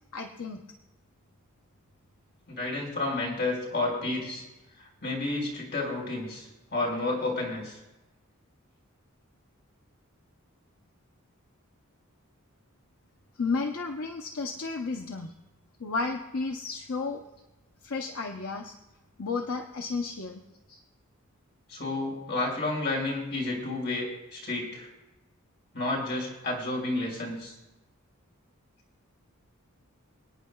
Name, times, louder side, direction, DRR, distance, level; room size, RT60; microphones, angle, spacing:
voice 1, 0.1-0.6 13.4-15.3 15.8-17.2 17.8-18.8 19.2-20.4, left 4 dB, 75° left, 4 dB, 0.8 m, -32 dB
voice 2, 2.5-4.4 5.0-7.8 21.7-24.9 25.7-27.5, left 2 dB, 55° left, -2 dB, 4.5 m, -31 dB
28.5 x 9.5 x 2.3 m, 1.0 s
head